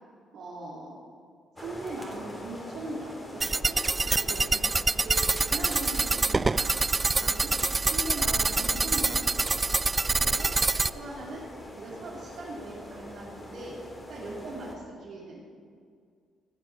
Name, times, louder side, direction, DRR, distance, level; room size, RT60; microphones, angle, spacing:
voice 1, 0.3-0.9 1.6-4.6 4.9-6.9 7.2-7.5 7.9-9.2 10.2-10.5 10.9-11.4 11.7-15.4, right 2 dB, 65° right, -6 dB, 3.0 m, -40 dB
sound 1, 1.6-14.8, left 1 dB, 25° left, 2.4 m, -44 dB
sound 2, 3.4-10.9, right 3 dB, 25° right, 0.3 m, -26 dB
15.0 x 7.7 x 7.3 m, 2.1 s
cardioid pair, 90°, 0 cm